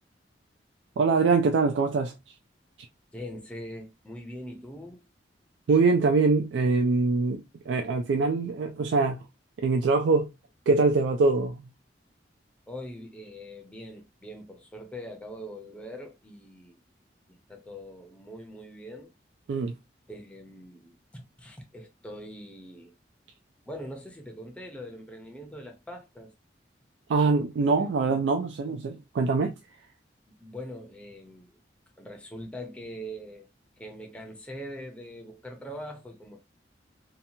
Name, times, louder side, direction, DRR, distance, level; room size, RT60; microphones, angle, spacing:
voice 1, 1.0-2.1 5.7-9.2 9.6-10.3 10.7-11.7 19.5-19.7 27.1-29.5, right 4 dB, 85° right, 0.3 m, -23 dB
voice 2, 3.1-5.1 12.7-16.7 17.3-19.1 20.1-22.9 23.7-26.3 27.7-27.9 30.3-31.6 32.0-33.5 33.8-36.5, equal, 5° left, 0.5 m, -42 dB
2.8 x 2.2 x 2.6 m
head